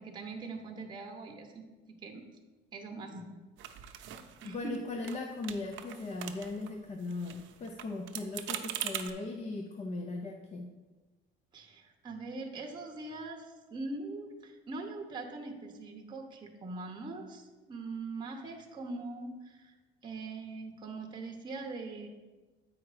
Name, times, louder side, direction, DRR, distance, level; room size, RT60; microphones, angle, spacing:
voice 1, 0.0-1.6 2.0-2.2 2.7-3.3 3.8-4.8 11.5-13.5 13.7-19.8 20.0-22.1, right 3 dB, 20° right, 2 dB, 0.8 m, -42 dB
sound 1, 3.6-4.8 5.0-5.2 5.4-6.7 7.0-9.1, right 11 dB, 65° right, 0.6 m, -41 dB
voice 2, 4.4-10.7, left 2 dB, 30° left, 3 dB, 0.5 m, -38 dB
8.4 x 4.9 x 4.8 m, 1.2 s
cardioid pair, 150°, 21 cm